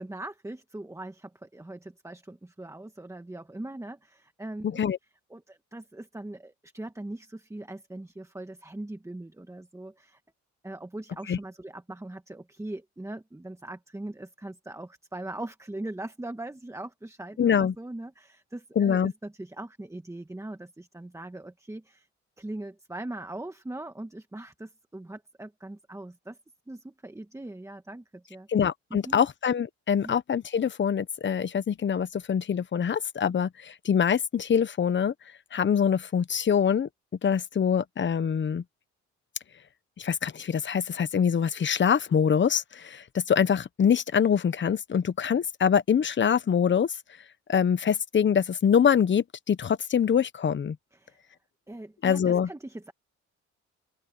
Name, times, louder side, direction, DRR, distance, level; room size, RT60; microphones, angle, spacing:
voice 1, 0.0-4.8 5.3-10.2 10.6-22.1 22.4-26.4 26.7-28.5 28.9-29.2 30.0-30.1 50.9-51.2 51.7-52.9, right 1 dB, 10° right, 1.5 m, -40 dB
voice 2, 17.4-17.7 18.8-19.1 28.5-35.1 35.5-36.9 37.2-38.6 40.0-46.9 47.5-50.8 52.0-52.5, left 7 dB, 40° left, 1.0 m, -24 dB
open air
cardioid pair, 90°, 30 cm